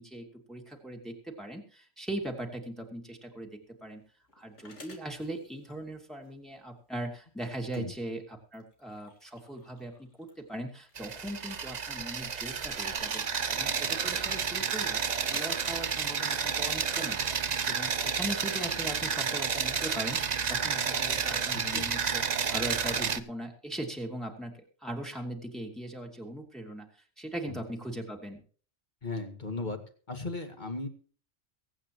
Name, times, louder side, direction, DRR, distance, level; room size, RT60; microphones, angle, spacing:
voice 1, 0.0-4.0 4.3-15.0 15.3-17.3 17.7-22.2 22.5-26.9 27.2-28.4, right 1 dB, ahead, 0 dB, 2.5 m, -39 dB
sound 1, 3.4-16.7, left 2 dB, 75° left, 2.8 m, -56 dB
sound 2, 11.0-23.2, right 6 dB, 40° right, 0.8 m, -31 dB
voice 2, 21.5-21.8 27.5-27.6 29.0-29.8 30.1-30.9, left 3 dB, 40° left, 5 dB, 2.2 m, -36 dB
23.5 x 8.9 x 3.1 m, 0.43 s
omnidirectional pair, 1.2 m